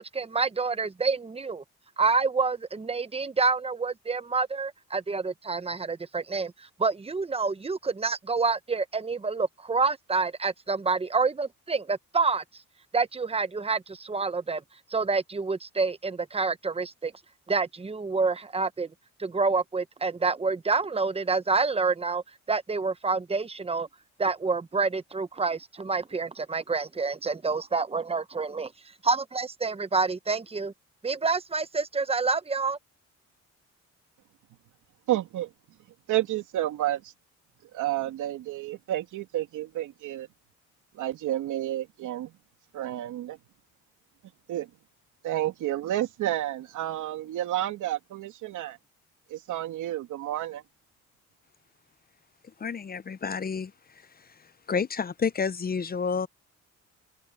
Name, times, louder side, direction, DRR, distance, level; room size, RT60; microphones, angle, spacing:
voice 1, 0.0-1.6 2.0-12.4 12.9-14.6 14.9-17.1 17.5-18.9 19.2-23.9 24.2-28.7 29.0-30.7 31.0-32.8, right 4 dB, 20° right, 1.0 m, -28 dB
voice 2, 35.1-35.5 36.1-37.1 37.7-40.3 40.9-42.3 42.7-43.4 44.5-44.7 45.2-48.8 49.3-50.6, right 14 dB, 85° right, 2.9 m, -30 dB
voice 3, 52.6-53.7 54.7-56.3, left 5 dB, 30° left, 0.7 m, -29 dB
cardioid pair, 90°, 30 cm